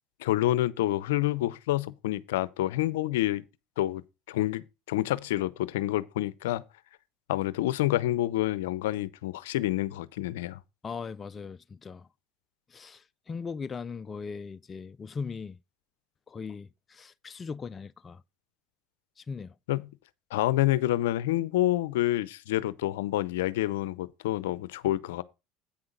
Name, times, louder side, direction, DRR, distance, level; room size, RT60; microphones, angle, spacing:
voice 1, 0.2-3.4 3.8-6.6 7.3-10.6 19.7-19.9 20.3-25.2, left 15 dB, 85° left, 0.5 m, -28 dB
voice 2, 10.8-12.1 12.7-15.6 16.3-18.2 19.2-19.5, left 5 dB, 30° left, 0.4 m, -39 dB
8.7 x 5.7 x 5.0 m
supercardioid pair, 90°, 0 cm